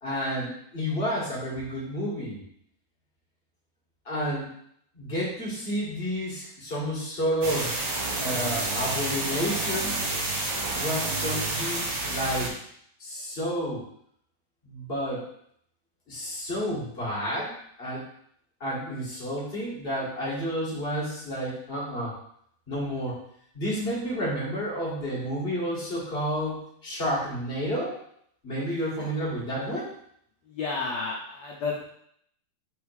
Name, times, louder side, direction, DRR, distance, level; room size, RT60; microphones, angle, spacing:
voice 1, 0.0-2.4 4.0-4.5 4.9-7.7 8.2-10.0 10.7-12.5 13.0-13.8 14.6-15.2 16.1-17.5 17.8-18.0 18.6-22.1 22.7-23.2 23.5-28.0 28.4-29.9, equal, 20° left, -6 dB, 1.7 m, -30 dB
sound 1, 7.4-12.5, right 2 dB, 60° right, 2.4 m, -29 dB
voice 2, 30.5-31.9, left 4 dB, 80° left, -2 dB, 1.5 m, -31 dB
6.4 x 3.5 x 4.8 m, 0.68 s
omnidirectional pair, 4.1 m